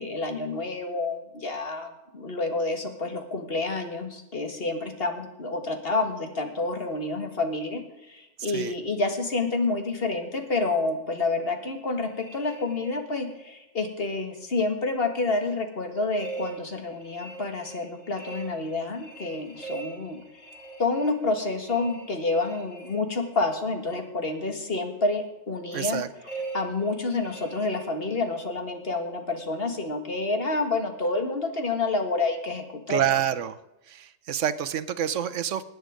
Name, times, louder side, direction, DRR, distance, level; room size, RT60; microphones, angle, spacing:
voice 1, 0.0-20.2 20.8-26.0 26.5-33.0, left 3 dB, 50° left, 5 dB, 2.0 m, -28 dB
sound 1, 12.0-13.6 16.2-23.5 26.2-28.5, right 4 dB, 80° left, 7.3 m, -42 dB
voice 2, 25.7-26.1 32.9-33.6 33.9-35.6, right 10 dB, 75° right, 13 dB, 1.1 m, -27 dB
18.0 x 9.4 x 5.1 m, 0.96 s
omnidirectional pair, 1.3 m